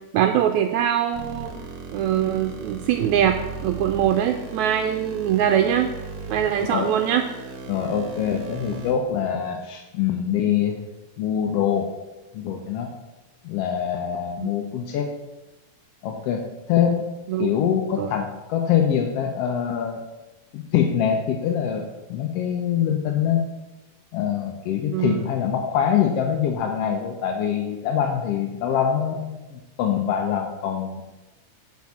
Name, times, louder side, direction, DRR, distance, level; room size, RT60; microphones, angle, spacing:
voice 1, 0.1-1.5 1.9-5.9 6.3-7.3 14.4-14.5 17.3-17.5 18.0-18.1 24.9-25.3, right 10 dB, 80° right, 6 dB, 1.8 m, -22 dB
sound 1, 1.1-8.9, right 4 dB, 50° right, 1.6 m, -37 dB
voice 2, 7.7-10.8 11.2-11.9 12.3-12.9 13.4-15.1 16.0-17.1 17.4-20.0 20.5-21.8 22.1-23.4 24.1-31.0, left 8 dB, 70° left, 2 dB, 1.5 m, -24 dB
10.5 x 4.7 x 7.1 m, 1.0 s
omnidirectional pair, 3.6 m